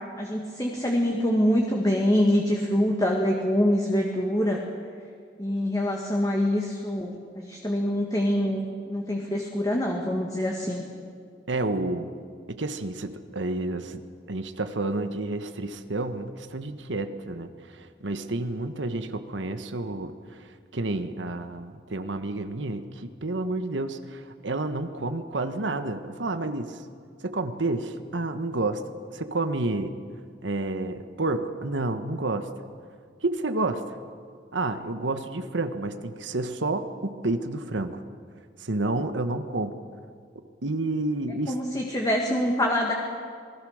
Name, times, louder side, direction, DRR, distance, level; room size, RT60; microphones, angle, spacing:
voice 1, 0.2-4.6 5.4-10.8 41.5-42.9, equal, 20° left, 0 dB, 1.9 m, -25 dB
voice 2, 11.5-12.1 12.5-14.0 14.3-26.8 27.2-28.9 29.1-29.9 30.4-32.5 33.2-34.0 34.5-38.0 38.6-39.7 40.6-41.6, right 2 dB, 90° right, 8 dB, 1.3 m, -30 dB
27.5 x 20.0 x 6.5 m, 2.2 s
head